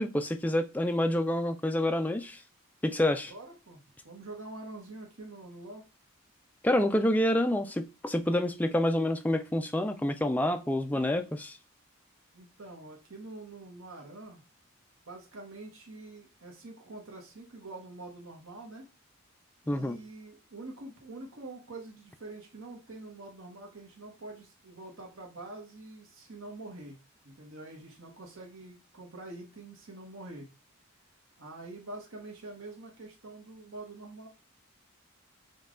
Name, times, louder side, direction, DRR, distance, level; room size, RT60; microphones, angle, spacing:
voice 1, 0.0-2.4 2.8-3.3 6.6-11.6 19.7-20.0, left 1 dB, 5° left, 6 dB, 0.3 m, -28 dB
voice 2, 3.3-5.8 12.3-14.4 15.0-18.8 19.6-27.0 27.2-30.5 31.4-34.3, right 2 dB, 70° right, 0 dB, 1.0 m, -45 dB
5.3 x 2.3 x 3.7 m, 0.29 s
head